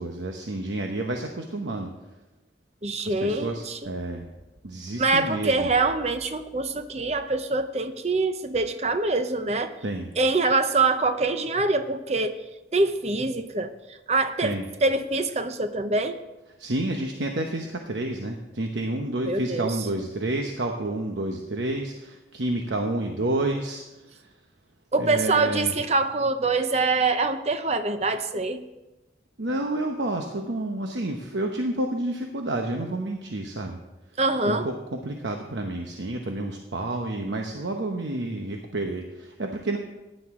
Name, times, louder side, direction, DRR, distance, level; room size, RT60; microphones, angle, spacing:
voice 1, 0.0-1.9 3.0-4.3 4.6-5.7 9.8-10.1 14.4-14.7 16.6-24.3 25.0-25.7 29.4-33.8 34.5-39.8, right 2 dB, 85° right, 3 dB, 1.0 m, -30 dB
voice 2, 2.8-3.8 5.0-9.7 10.2-12.4 12.7-14.5 14.8-16.2 19.2-19.7 24.9-28.6 34.2-34.7, right 3 dB, 35° right, 9 dB, 0.7 m, -24 dB
15.5 x 10.5 x 3.7 m, 1.0 s
head